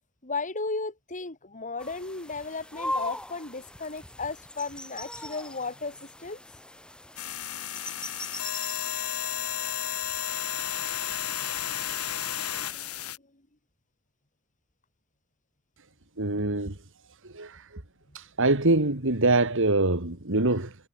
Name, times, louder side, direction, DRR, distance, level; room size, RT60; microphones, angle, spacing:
voice 1, 0.2-6.4 12.3-12.8, left 3 dB, 35° left, 4.3 m, -35 dB
sound 1, 1.8-13.1, left 1 dB, 5° left, 2.3 m, -41 dB
sound 2, 7.2-13.2, left 11 dB, 90° left, 3.3 m, -32 dB
voice 2, 16.2-16.8 17.2-17.8 18.1-20.8, right 2 dB, 60° right, 2.9 m, -24 dB
head